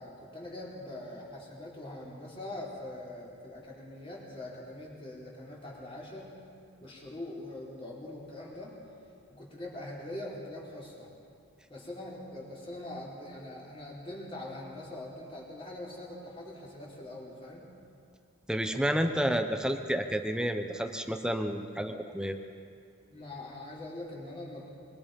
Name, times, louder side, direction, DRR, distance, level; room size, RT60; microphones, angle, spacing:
voice 1, 0.0-6.4 6.8-8.8 9.3-11.1 11.7-17.7 18.6-19.1 23.1-24.7, left 1 dB, 25° left, -4 dB, 4.8 m, -43 dB
voice 2, 18.5-22.4, equal, 5° right, 6 dB, 0.9 m, -30 dB
25.0 x 23.5 x 5.4 m, 2.3 s
head